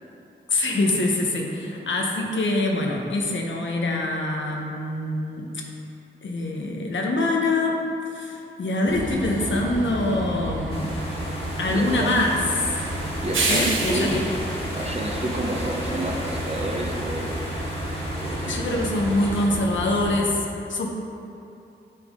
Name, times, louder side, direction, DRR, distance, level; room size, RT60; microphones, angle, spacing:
voice 1, 0.5-5.5 6.2-7.8 8.1-10.9 11.6-12.4 13.5-14.2 18.5-20.9, left 2 dB, 75° left, 0 dB, 0.9 m, -24 dB
Train, 8.9-20.2, right 2 dB, 85° right, 0.9 m, -30 dB
sound 1, 10.7-19.5, left 1 dB, 30° left, 1.4 m, -36 dB
voice 2, 11.7-12.1 13.2-14.2 14.8-17.3 18.2-18.9, right 1 dB, 30° right, 1 dB, 0.9 m, -30 dB
9.8 x 3.5 x 3.7 m, 2.6 s
cardioid pair, 55°, 20 cm